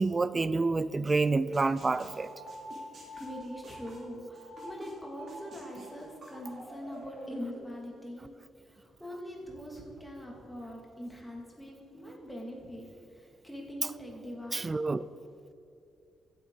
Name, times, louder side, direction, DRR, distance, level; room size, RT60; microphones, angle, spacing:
voice 1, 0.0-2.3 14.5-15.0, right 3 dB, 25° right, 0.3 m, -28 dB
sound 1, 1.1-1.2 1.5-4.9 5.3-7.6, right 2 dB, 45° right, 3.0 m, -48 dB
sound 2, 2.1-3.9 4.3-4.7 5.1-5.9, right 1 dB, 75° right, 2.7 m, -47 dB
voice 2, 3.1-8.3 8.7-12.9 13.1-14.7, equal, 5° left, 2.3 m, -43 dB
15.5 x 8.5 x 4.0 m
cardioid pair, 120°, 0 cm